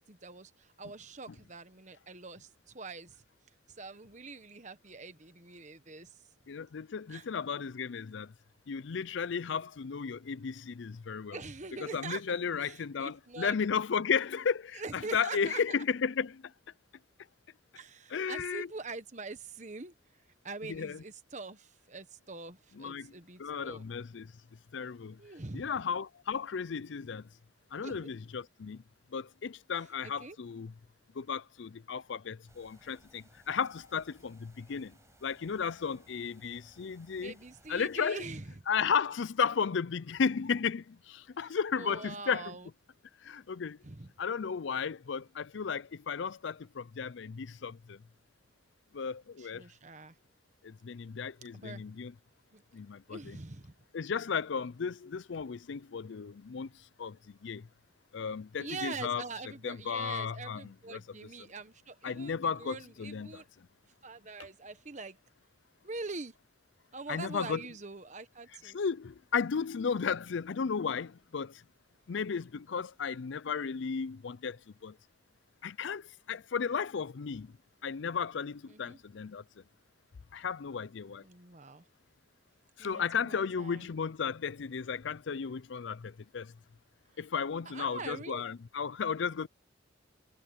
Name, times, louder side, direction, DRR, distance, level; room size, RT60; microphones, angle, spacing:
voice 1, 0.0-3.1 3.8-6.1 7.1-7.3 11.3-12.2 12.6-13.6 14.7-15.8 17.7-19.9 20.4-23.8 25.2-25.7 27.8-28.1 30.0-30.4 37.2-38.6 41.4-41.5 41.8-42.7 43.8-44.1 49.4-50.1 51.5-51.8 52.5-52.6 53.1-53.7 58.6-63.5 64.0-65.2 65.8-66.3 66.9-68.8 78.7-79.0 81.2-81.8 82.8-83.9 87.6-88.4, right 3 dB, 35° right, 1.3 m, -44 dB
voice 2, 6.5-8.3 8.7-11.4 11.9-16.5 18.1-18.7 20.6-21.0 22.8-23.1 23.4-24.3 24.7-25.2 25.5-27.3 27.7-28.8 29.1-30.7 31.2-37.3 37.7-38.2 38.7-42.5 43.2-43.8 44.2-48.0 48.9-49.6 50.6-52.1 52.7-53.4 53.9-56.7 57.0-57.7 58.1-59.2 59.6-61.0 62.0-63.4 67.1-67.6 68.6-71.6 72.1-75.0 75.6-77.5 77.8-79.4 80.3-81.2 82.8-86.5 87.2-89.5, left 6 dB, 65° left, 0.5 m, -34 dB
sound 1, 32.5-38.0, right 1 dB, 15° right, 6.4 m, -63 dB
head